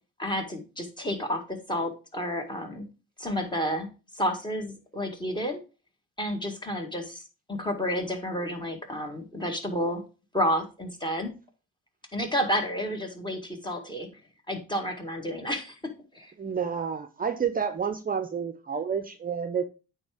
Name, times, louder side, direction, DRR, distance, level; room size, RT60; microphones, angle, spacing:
voice 1, 0.2-2.9 3.2-3.9 4.1-5.6 6.2-10.0 10.3-11.3 12.1-14.1 14.5-15.8 16.1-16.3, equal, 15° left, 4 dB, 1.8 m, -30 dB
voice 2, 16.4-19.6, right 6 dB, 30° right, 9 dB, 0.7 m, -29 dB
8.6 x 3.5 x 4.9 m, 0.32 s
cardioid pair, 90°, 30 cm